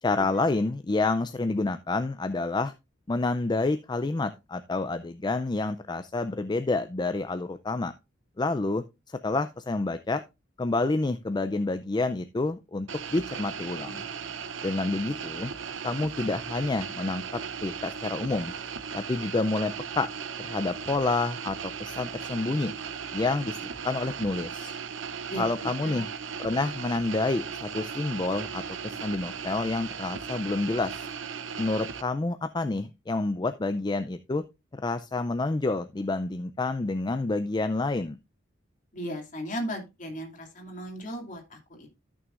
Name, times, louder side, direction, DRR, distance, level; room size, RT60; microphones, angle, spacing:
voice 1, 0.0-2.7 3.1-7.9 8.4-10.2 10.6-14.0 14.6-15.5 15.8-18.5 18.9-20.1 20.4-22.7 23.1-23.6 23.8-24.7 25.4-26.1 26.4-31.1 31.6-34.4 34.7-38.2, left 3 dB, 25° left, 10 dB, 0.4 m, -28 dB
sound 1, 12.9-32.0, right 6 dB, 85° right, 0.7 m, -37 dB
voice 2, 25.3-26.1 38.9-41.9, equal, 45° left, 2 dB, 2.6 m, -36 dB
14.0 x 6.2 x 2.5 m, 0.25 s
head